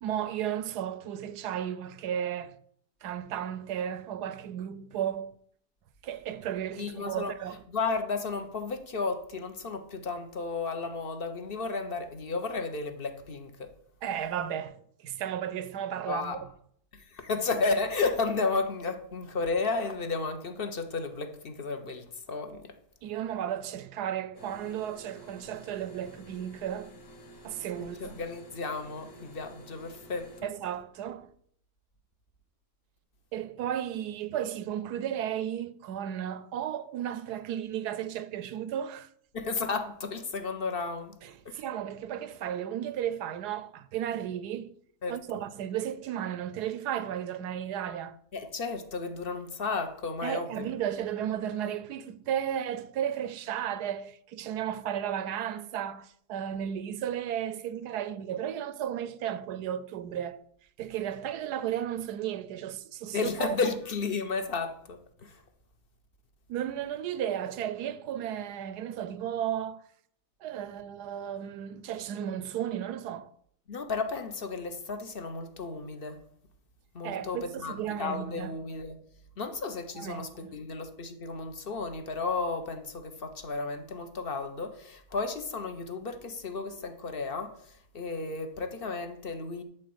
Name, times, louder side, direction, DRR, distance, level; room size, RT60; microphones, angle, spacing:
voice 1, 0.0-2.6 3.0-5.4 6.0-7.6 14.0-16.5 23.0-26.9 27.4-28.2 30.4-31.3 33.3-39.1 41.2-44.7 45.1-48.2 50.2-60.4 60.8-63.6 66.5-69.8 70.4-73.3 77.0-78.6 79.9-80.5, right 10 dB, 75° right, 1.1 m, -34 dB
voice 2, 6.8-7.3 7.7-13.7 16.1-16.4 16.9-22.7 28.0-30.5 39.3-41.2 41.4-41.6 45.0-45.2 48.3-50.7 63.1-65.4 73.7-76.2 76.9-79.0 79.4-89.6, left 4 dB, 40° left, 1.1 m, -33 dB
sound 1, 24.3-30.4, right 1 dB, 90° left, 2.2 m, -51 dB
12.5 x 4.2 x 7.9 m
omnidirectional pair, 1.8 m